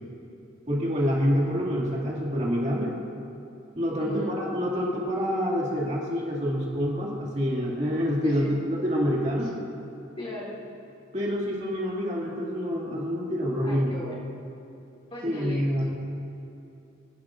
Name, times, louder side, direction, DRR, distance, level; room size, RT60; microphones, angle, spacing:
voice 1, 0.7-2.9 3.8-9.5 11.1-14.0 15.2-15.8, equal, 35° right, -4 dB, 2.1 m, -27 dB
voice 2, 4.0-4.4 8.2-8.6 10.2-10.6 13.6-14.2 15.1-15.9, left 1 dB, 30° left, -6 dB, 2.8 m, -37 dB
26.5 x 12.0 x 2.5 m, 2.8 s
head